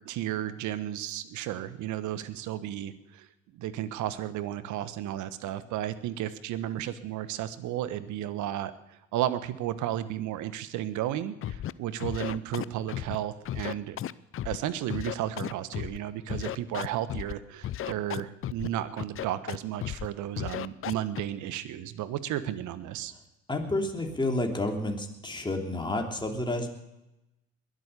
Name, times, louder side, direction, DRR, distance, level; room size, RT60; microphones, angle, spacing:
voice 1, 0.0-3.3 3.5-8.7 9.1-14.0 14.4-23.1, right 12 dB, 65° right, 14 dB, 1.3 m, -33 dB
Scratching (performance technique), 11.4-11.7 12.0-13.1 13.4-14.6 14.9-16.0 16.3-17.3 17.6-18.7 19.0-19.6 19.8-20.1 20.4-21.2, left 12 dB, 40° left, 0.6 m, -34 dB
voice 2, 23.5-26.7, left 2 dB, 15° left, 2 dB, 3.1 m, -30 dB
21.5 x 8.1 x 6.8 m, 0.92 s
hypercardioid pair, 60°, 32 cm